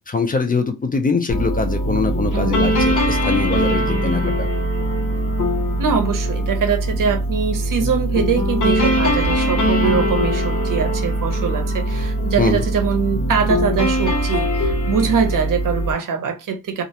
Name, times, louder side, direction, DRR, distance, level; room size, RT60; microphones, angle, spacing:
voice 1, 0.1-4.5 12.4-12.6, left 4 dB, 25° left, 0.4 m, -22 dB
sound 1, 1.3-15.9, equal, 65° left, 0.8 m, -21 dB
voice 2, 2.3-2.6 5.8-16.8, right 6 dB, 75° right, 0.6 m, -22 dB
2.4 x 2.0 x 2.7 m
wide cardioid pair, 120°, 33 cm